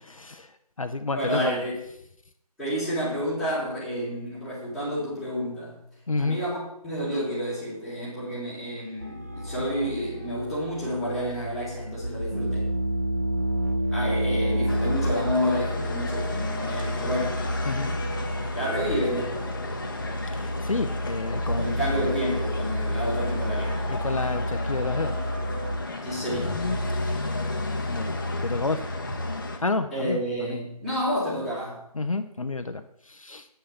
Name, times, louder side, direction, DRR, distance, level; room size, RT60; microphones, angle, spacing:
voice 1, 0.1-0.5 0.8-1.6 6.1-6.4 17.7-17.9 20.4-21.8 23.9-25.1 26.9-27.2 27.9-28.8 29.6-30.6 31.9-33.5, left 3 dB, 60° left, 8 dB, 0.7 m, -30 dB
voice 2, 1.1-1.8 2.6-5.7 6.2-6.6 6.8-12.7 13.9-17.4 18.5-19.5 21.5-23.8 26.0-26.5 29.9-31.8, equal, ahead, -12 dB, 1.7 m, -29 dB
sound 1, 9.0-25.7, equal, 25° right, 0.5 m, -30 dB
sound 2, 14.7-29.6, left 2 dB, 30° left, 1.0 m, -33 dB
8.5 x 5.8 x 6.8 m, 0.76 s
figure-of-eight pair, 165°, 20 cm